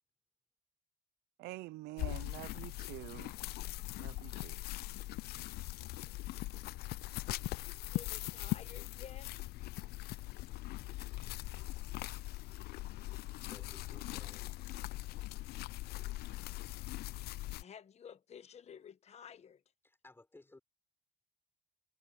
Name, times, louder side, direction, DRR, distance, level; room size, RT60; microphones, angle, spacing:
voice 1, 1.4-3.3 3.9-4.6, right 18 dB, 80° right, 0.6 m, -47 dB
sound 1, 2.0-17.6, left 18 dB, 70° left, 0.4 m, -41 dB
voice 2, 7.9-9.3 17.6-19.6, left 8 dB, 40° left, 1.2 m, -52 dB
voice 3, 13.5-14.7 19.8-20.6, left 2 dB, 15° left, 6.2 m, -58 dB
cardioid pair, 110°, 17 cm